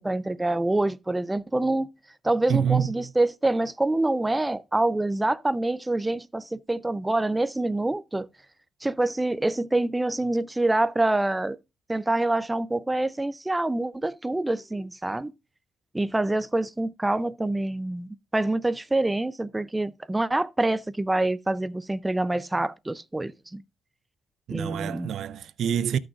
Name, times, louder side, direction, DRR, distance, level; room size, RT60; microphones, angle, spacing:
voice 1, 0.0-1.9 2.2-8.3 8.8-11.6 11.9-15.3 15.9-23.6 24.5-25.1, right 2 dB, 10° right, 0.5 m, -26 dB
voice 2, 2.5-3.1 24.5-26.0, right 8 dB, 70° right, 0.4 m, -26 dB
14.0 x 6.1 x 2.5 m
cardioid pair, 90°, 0 cm